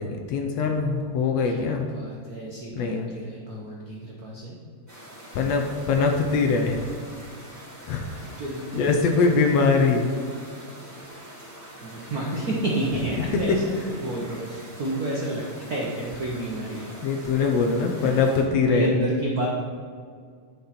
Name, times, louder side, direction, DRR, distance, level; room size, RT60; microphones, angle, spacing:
voice 1, 0.0-1.9 2.7-3.1 5.4-6.8 7.9-8.2 8.8-10.1 17.0-18.9, left 4 dB, 70° left, 3 dB, 1.8 m, -22 dB
voice 2, 1.4-4.6 8.2-9.3 11.8-17.1 18.0-18.2 18.7-19.5, right 1 dB, 80° right, -3 dB, 0.8 m, -30 dB
sound 1, 4.9-18.4, right 1 dB, 5° left, 1.9 m, -44 dB
10.5 x 5.5 x 4.3 m, 2.1 s
omnidirectional pair, 3.3 m